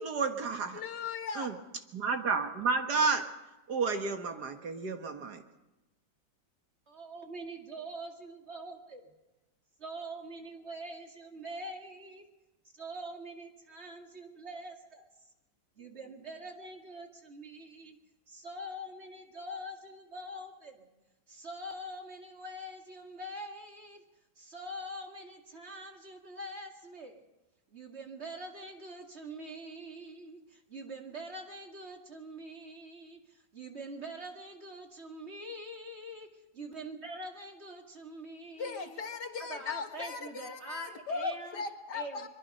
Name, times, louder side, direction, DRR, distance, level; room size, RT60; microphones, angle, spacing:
voice 1, 0.0-0.8 1.4-1.5 1.9-3.3 3.7-5.4, right 4 dB, 65° right, 6 dB, 2.1 m, -31 dB
voice 2, 0.7-1.6 38.6-42.3, left 5 dB, 70° left, 5 dB, 2.2 m, -38 dB
voice 3, 6.9-9.1 9.8-12.2 12.7-15.1 15.8-18.0 18.3-20.9 21.3-24.0 24.4-27.2 27.7-36.3 36.5-39.0 39.4-41.6 41.9-42.3, right 1 dB, 40° right, 2 dB, 2.5 m, -44 dB
23.0 x 22.5 x 5.5 m, 1.0 s
omnidirectional pair, 1.9 m